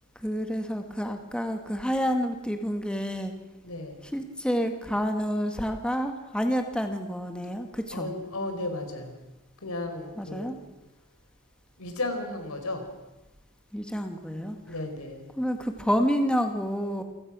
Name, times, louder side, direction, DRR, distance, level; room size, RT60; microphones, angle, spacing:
voice 1, 0.1-3.3 4.1-8.1 10.2-10.6 13.7-14.6 15.4-17.0, equal, 5° left, 5 dB, 1.6 m, -29 dB
voice 2, 3.6-4.1 7.9-9.2 9.6-10.6 11.8-12.9 14.7-15.3, left 2 dB, 80° left, 6 dB, 4.2 m, -34 dB
28.0 x 17.0 x 6.1 m, 1.1 s
head